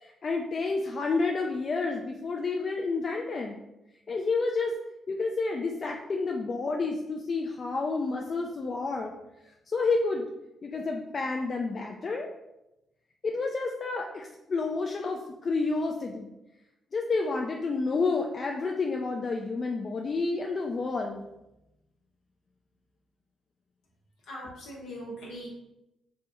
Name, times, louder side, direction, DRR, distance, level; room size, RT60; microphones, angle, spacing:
voice 1, 0.0-3.6 4.1-4.7 5.1-9.1 9.7-10.3 10.6-12.3 13.2-16.3 16.9-21.2, left 3 dB, 50° left, 1 dB, 0.3 m, -30 dB
voice 2, 24.3-25.5, equal, 75° left, -3 dB, 0.9 m, -40 dB
3.3 x 2.1 x 2.9 m, 0.91 s
hypercardioid pair, 50°, 0 cm